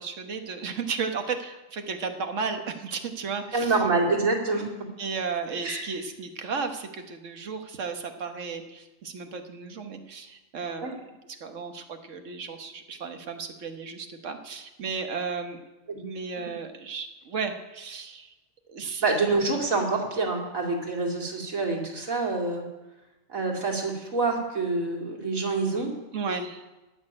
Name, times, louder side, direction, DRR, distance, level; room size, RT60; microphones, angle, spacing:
voice 1, 0.0-3.7 5.0-11.0 11.3-15.6 15.9-18.3 18.7-19.0 26.1-26.6, right 5 dB, 70° right, 6 dB, 1.5 m, -34 dB
voice 2, 3.5-4.6 5.6-5.8 10.8-10.9 15.9-16.0 19.0-22.7 23.3-25.9, right 3 dB, 90° right, 0 dB, 2.8 m, -26 dB
14.5 x 6.4 x 10.0 m, 1.1 s
omnidirectional pair, 1.4 m